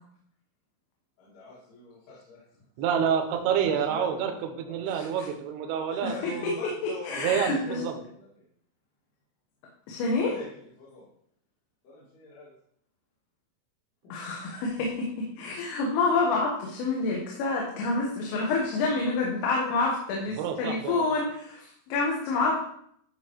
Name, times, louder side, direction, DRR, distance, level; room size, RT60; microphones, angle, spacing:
voice 1, 1.2-2.4 3.6-4.8 6.1-7.8 8.1-8.5 10.2-10.4 10.8-11.1 11.8-12.5 14.2-14.3, left 2 dB, 70° left, -8 dB, 4.5 m, -44 dB
voice 2, 2.8-6.6 7.2-8.0 20.4-21.1, right 8 dB, 80° right, 4 dB, 2.4 m, -28 dB
voice 3, 4.9-5.3 5.9-6.3 7.0-7.8 9.9-10.3 14.1-22.6, left 3 dB, 90° left, -3 dB, 4.0 m, -28 dB
12.5 x 6.1 x 3.1 m, 0.67 s
omnidirectional pair, 5.7 m